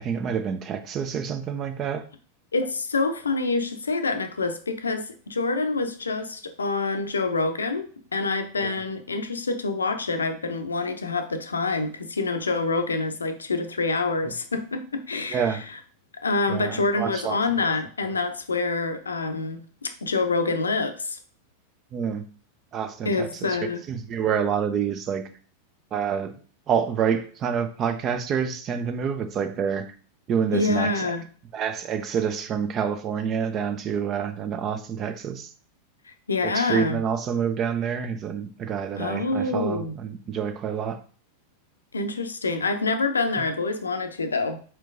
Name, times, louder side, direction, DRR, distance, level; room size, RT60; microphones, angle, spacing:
voice 1, 0.0-2.0 8.6-8.7 15.3-15.6 16.5-17.7 21.9-22.3 22.7-23.6 23.9-25.2 25.9-26.4 26.7-29.9 30.3-31.1 31.5-35.5 36.4-41.0 43.4-43.5, right 7 dB, 30° right, 10 dB, 0.5 m, -27 dB
voice 2, 2.5-15.6 16.2-21.2 23.0-23.8 30.5-31.2 36.3-37.0 39.0-39.9 41.9-44.6, left 3 dB, 75° left, 8 dB, 0.6 m, -26 dB
4.5 x 4.3 x 2.5 m, 0.42 s
figure-of-eight pair, 90°, 0 cm